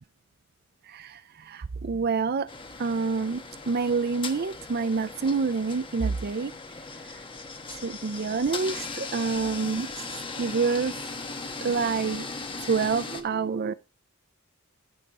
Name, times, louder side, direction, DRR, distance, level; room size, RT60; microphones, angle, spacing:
voice 1, 0.9-2.5 2.8-6.5 7.8-9.9 10.4-10.9 11.6-12.3 12.6-13.7, right 5 dB, 50° right, 0.5 m, -27 dB
sound 1, 2.5-13.2, left 3 dB, 25° left, 1.2 m, -38 dB
14.0 x 6.4 x 3.7 m
head